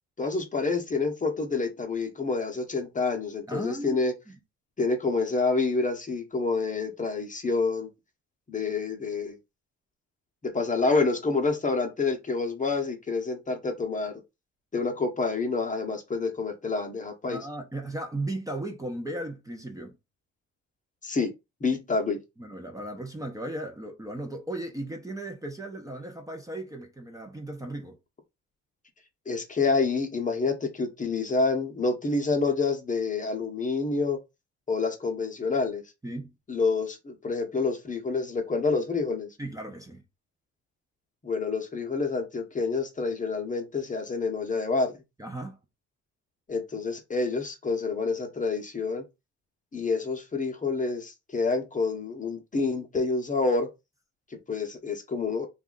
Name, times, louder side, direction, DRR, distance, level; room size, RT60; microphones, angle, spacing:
voice 1, 0.2-4.1 4.8-7.9 8.5-9.4 10.4-14.1 14.7-17.4 21.0-21.3 21.6-22.2 29.3-34.2 34.7-35.8 36.5-39.3 41.2-44.9 46.5-49.0 49.7-53.7 54.5-55.5, left 4 dB, 25° left, 0.8 m, -28 dB
voice 2, 3.5-4.4 17.3-19.9 22.4-28.0 36.0-36.3 39.4-40.0 45.2-45.6, right 1 dB, 10° right, 0.6 m, -36 dB
2.7 x 2.4 x 3.8 m
cardioid pair, 90°, 30 cm